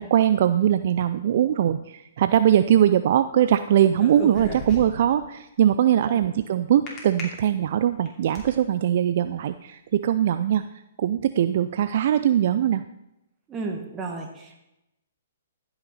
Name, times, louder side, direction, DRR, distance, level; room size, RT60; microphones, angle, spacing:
voice 1, 0.0-10.6 11.0-12.8, right 10 dB, 55° right, 11 dB, 0.4 m, -21 dB
sound 1, 3.9-5.2 6.9-7.2 7.8-8.5, left 1 dB, 25° left, 2.7 m, -34 dB
voice 2, 13.5-14.6, right 3 dB, 20° right, 1 dB, 1.8 m, -33 dB
15.0 x 6.0 x 4.1 m, 0.88 s
hypercardioid pair, 130°, 0 cm